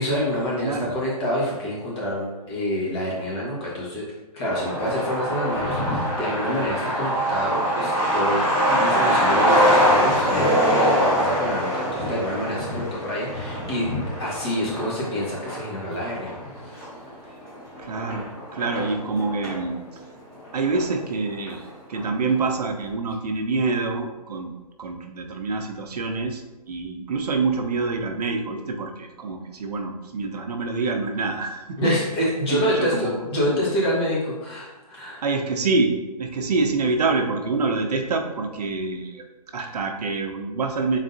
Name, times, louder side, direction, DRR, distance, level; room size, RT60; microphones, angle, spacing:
voice 1, 0.0-4.1 4.3-10.5 10.8-13.9 14.2-16.3 16.6-16.8 31.8-35.2, equal, 40° left, -5 dB, 1.4 m, -27 dB
voice 2, 0.6-1.0 17.8-19.8 20.5-24.5 24.8-26.4 26.7-32.0 32.5-33.6 35.2-39.2 39.5-41.0, right 3 dB, 75° right, 4 dB, 0.7 m, -26 dB
Truck, 4.4-19.6 20.0-20.1 20.3-21.2 21.5-21.6 21.9-22.3, equal, 10° left, 1.1 m, -23 dB
4.0 x 3.6 x 2.6 m, 1.2 s
hypercardioid pair, 155°, 20 cm